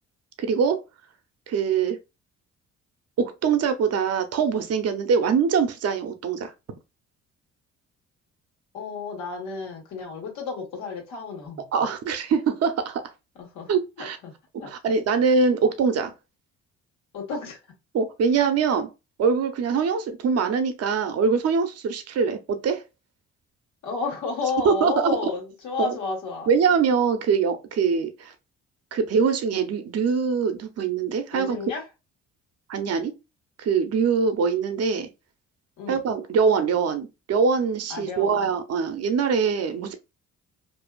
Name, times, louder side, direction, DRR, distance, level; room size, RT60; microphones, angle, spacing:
voice 1, 0.4-0.8 1.5-2.0 3.2-6.5 11.7-13.0 13.7-14.2 14.7-16.1 17.9-18.9 19.2-22.8 24.6-25.2 25.8-25.9 26.5-28.3 28.9-31.6 32.7-33.1 33.6-35.1 35.9-39.9, right 5 dB, 55° right, 0.7 m, -23 dB
voice 2, 8.7-11.6 13.4-13.7 14.0-14.3 14.6-14.7 17.1-17.6 23.8-26.5 31.3-31.8 35.8-36.0 37.9-38.6, left 4 dB, 80° left, 1.3 m, -31 dB
2.6 x 2.3 x 2.2 m
cardioid pair, 75°, 29 cm